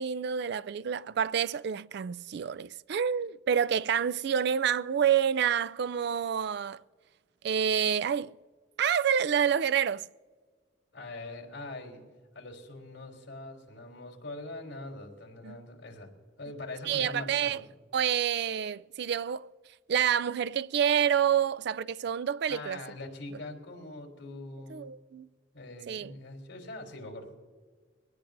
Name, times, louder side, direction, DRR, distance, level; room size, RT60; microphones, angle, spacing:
voice 1, 0.0-6.8 7.4-8.3 8.8-10.1 15.4-15.6 16.9-17.6 17.9-19.5 19.9-22.8 24.7-25.3 25.9-26.1, right 8 dB, 60° right, 0.4 m, -28 dB
voice 2, 10.9-12.0 12.3-16.1 16.4-17.7 22.5-24.9 25.5-27.3, left 2 dB, 75° left, 3.6 m, -43 dB
22.5 x 18.5 x 2.6 m
head